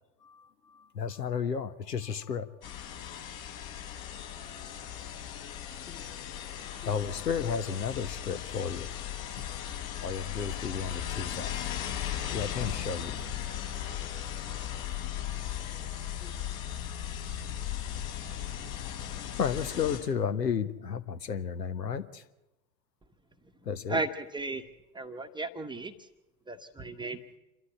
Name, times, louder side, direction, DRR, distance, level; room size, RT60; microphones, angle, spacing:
voice 1, 0.2-2.5 6.8-8.9 9.4-9.5 10.0-11.6 12.3-13.2 19.4-22.2 23.6-24.0, left 7 dB, 75° left, 11 dB, 1.4 m, -33 dB
sound 1, 2.6-20.0, left 10 dB, 55° left, 5.6 m, -37 dB
voice 2, 5.8-6.2 6.8-7.2 13.6-14.1 14.5-15.0 16.2-16.3, left 8 dB, 20° left, 5 dB, 1.9 m, -53 dB
voice 3, 23.9-24.6 24.9-26.1 26.5-27.2, right 2 dB, 10° right, 7 dB, 1.1 m, -35 dB
28.0 x 13.0 x 8.6 m, 0.98 s
figure-of-eight pair, 85°, 49 cm